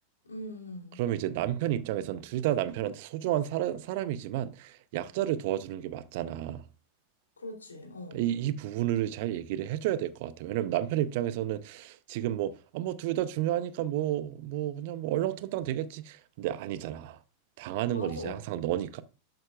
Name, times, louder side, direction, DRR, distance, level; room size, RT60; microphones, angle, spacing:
voice 1, 0.2-1.0 7.4-8.2 17.9-18.4, left 1 dB, 75° left, 3.1 m, -41 dB
voice 2, 1.0-6.6 8.1-17.2 17.6-19.0, right 12 dB, 50° right, 0.7 m, -31 dB
12.0 x 7.7 x 2.4 m
figure-of-eight pair, 90°, 0 cm